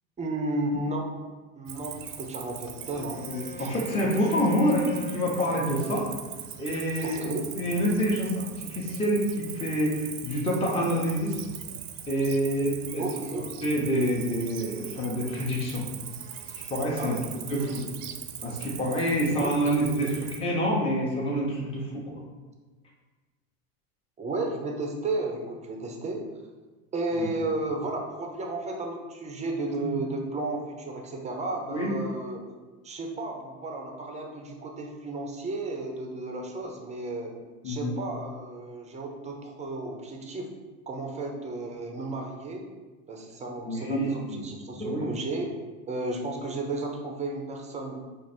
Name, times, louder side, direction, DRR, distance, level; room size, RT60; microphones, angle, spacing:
voice 1, 0.2-1.1 1.6-3.2 3.6-3.8 7.0-7.4 13.0-13.5 17.0-17.4 19.4-20.2 24.2-26.2 26.9-32.5 32.8-37.3 37.6-40.5 40.9-42.6 43.1-45.5 45.9-48.0, right 2 dB, 15° right, 2 dB, 0.6 m, -33 dB
Cricket, 1.7-20.4, right 10 dB, 60° right, 0.6 m, -41 dB
Wind instrument woodwind instrument, 2.7-6.0, equal, 80° left, 1.2 m, -42 dB
voice 2, 3.2-6.1 6.6-11.4 12.1-13.0 13.3-15.8 16.5-17.1 17.5-17.8 18.4-22.2 27.2-27.3 29.8-29.9 31.7-31.9 37.6-38.0 43.6-44.4 44.7-45.1, equal, 15° left, -4 dB, 0.8 m, -27 dB
4.8 x 2.5 x 4.3 m, 1.3 s
supercardioid pair, 115°, 43 cm